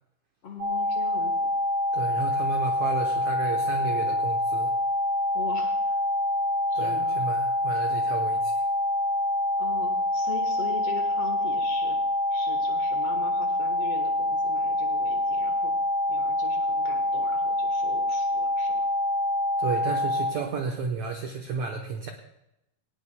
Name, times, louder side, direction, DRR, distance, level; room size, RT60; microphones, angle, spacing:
voice 1, 0.4-1.5 5.3-5.9 6.7-7.2 9.6-12.0 12.3-15.7 16.1-18.8, left 5 dB, 80° left, 3 dB, 1.3 m, -41 dB
sound 1, 0.6-20.3, left 1 dB, 10° right, 2.0 m, -26 dB
voice 2, 1.9-4.7 6.7-8.6 19.6-22.1, right 5 dB, 85° right, 3 dB, 1.6 m, -32 dB
18.5 x 17.0 x 2.2 m, 0.86 s
omnidirectional pair, 4.7 m